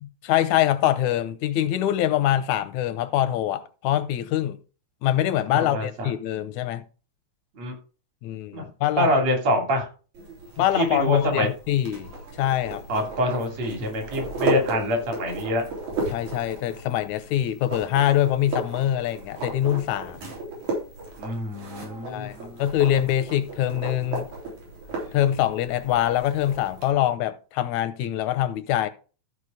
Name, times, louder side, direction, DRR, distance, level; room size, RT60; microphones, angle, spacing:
voice 1, 0.0-4.6 5.0-6.8 8.2-9.1 10.6-12.1 12.4-12.8 16.1-20.2 22.1-24.3 25.1-28.9, left 12 dB, 90° left, 2.2 m, -24 dB
voice 2, 5.5-6.1 7.6-7.7 8.5-8.6 8.9-9.9 10.7-11.5 12.9-15.6 21.2-22.6, equal, 60° right, 3.9 m, -26 dB
sound 1, 10.1-26.9, right 2 dB, 80° right, 4.9 m, -35 dB
13.5 x 5.0 x 4.9 m
omnidirectional pair, 3.3 m